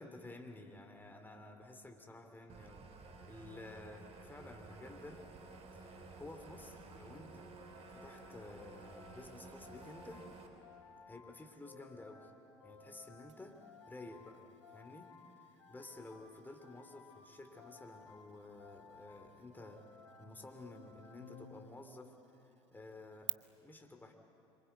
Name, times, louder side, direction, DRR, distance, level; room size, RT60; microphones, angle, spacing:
voice 1, 0.0-2.9 3.3-5.3 5.7-7.5 7.9-10.3 11.1-12.3 12.6-14.4 14.7-15.1 15.5-19.8 20.2-22.4 22.7-23.3 23.6-24.1, left 2 dB, 15° left, 4 dB, 2.8 m, -52 dB
sound 1, 2.5-10.5, right 3 dB, 45° right, 3.7 m, -54 dB
sound 2, 7.6-22.1, left 4 dB, 80° left, 2.7 m, -59 dB
sound 3, 13.3-23.3, right 10 dB, 85° right, 0.5 m, -53 dB
26.5 x 24.0 x 8.3 m, 2.8 s
hypercardioid pair, 65°, 15 cm